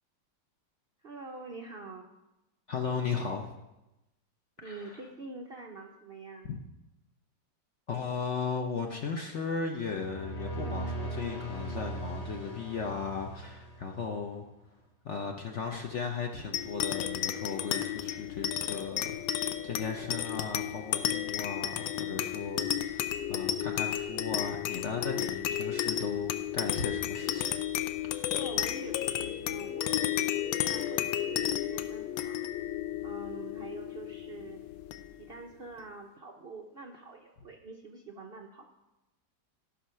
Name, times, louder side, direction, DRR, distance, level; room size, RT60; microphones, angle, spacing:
voice 1, 1.0-2.1 4.6-6.5 28.3-30.0 30.4-32.7 33.0-34.6 35.2-38.7, right 3 dB, 80° right, 2 dB, 0.5 m, -46 dB
voice 2, 2.7-3.5 4.6-5.0 6.4-6.6 7.9-14.5 15.0-27.5 28.1-28.2, left 5 dB, 60° left, 3 dB, 0.8 m, -36 dB
sound 1, 9.9-14.2, right 1 dB, 25° left, 1.0 m, -39 dB
sound 2, 16.5-35.4, left 11 dB, 80° left, 1.3 m, -33 dB
13.0 x 5.8 x 5.6 m, 0.98 s
omnidirectional pair, 2.0 m